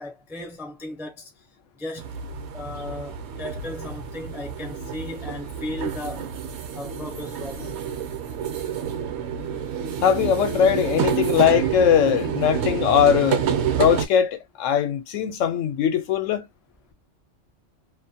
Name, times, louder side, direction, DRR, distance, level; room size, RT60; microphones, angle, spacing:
voice 1, 0.0-1.5 1.8-2.1 2.5-6.2 6.7-7.7, left 1 dB, 5° right, 0.3 m, -36 dB
sound 1, 2.0-14.1, right 8 dB, 65° right, 0.8 m, -28 dB
voice 2, 10.0-13.4 13.8-16.5, left 8 dB, 80° left, 0.9 m, -20 dB
2.4 x 2.2 x 2.7 m
omnidirectional pair, 1.3 m